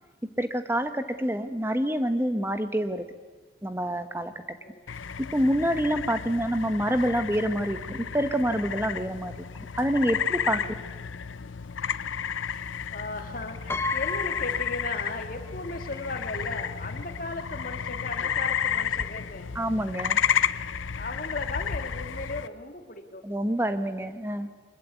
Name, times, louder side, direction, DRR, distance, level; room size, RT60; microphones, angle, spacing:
voice 1, 0.4-3.0 3.6-4.3 5.3-9.3 9.8-10.6 19.5-20.2 23.2-24.5, equal, 10° right, 9 dB, 1.2 m, -27 dB
sound 1, 4.9-22.5, left 8 dB, 90° left, 0.6 m, -32 dB
voice 2, 12.9-19.5 21.0-23.2, left 2 dB, 45° left, 6 dB, 2.4 m, -37 dB
Piano, 13.7-15.5 15.8-15.9 17.1-17.2 17.5-17.7, left 2 dB, 15° left, 0.7 m, -35 dB
24.0 x 21.5 x 8.5 m, 1.4 s
head